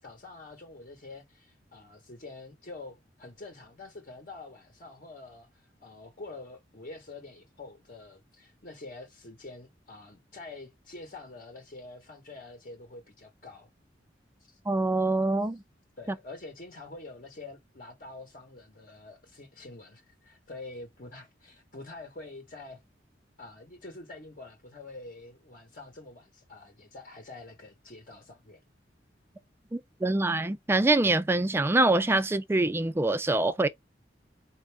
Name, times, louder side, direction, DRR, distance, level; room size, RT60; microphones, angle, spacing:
voice 1, 0.0-13.7 14.4-14.6 16.0-22.8 23.4-28.6, left 2 dB, 50° left, 1.0 m, -46 dB
voice 2, 14.7-15.6 29.7-33.7, right 2 dB, 15° right, 0.3 m, -25 dB
4.4 x 2.5 x 3.3 m
head